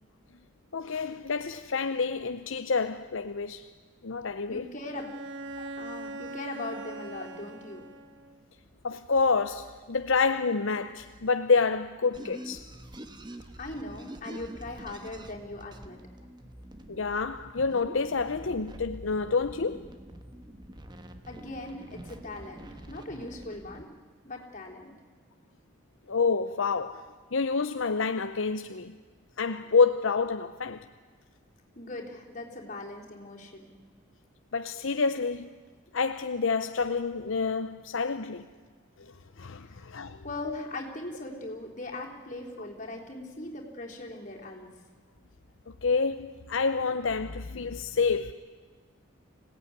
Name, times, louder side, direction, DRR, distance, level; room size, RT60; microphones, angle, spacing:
voice 1, 0.7-3.7 4.0-4.6 5.6-5.7 8.8-12.7 16.9-19.9 26.1-28.9 29.4-30.9 34.5-35.5 35.9-38.5 39.0-39.1 39.4-40.2 45.8-48.3, left 4 dB, 70° left, 0.7 m, -28 dB
voice 2, 4.5-5.1 5.4-7.9 13.6-16.0 21.3-23.9 24.2-24.9 31.7-33.7 39.6-39.9 40.2-44.7, left 2 dB, 35° left, 3.6 m, -40 dB
Bowed string instrument, 4.9-8.5, right 2 dB, 60° right, 1.2 m, -41 dB
sound 1, 12.1-23.8, right 1 dB, 20° right, 1.2 m, -46 dB
25.5 x 17.5 x 9.6 m
head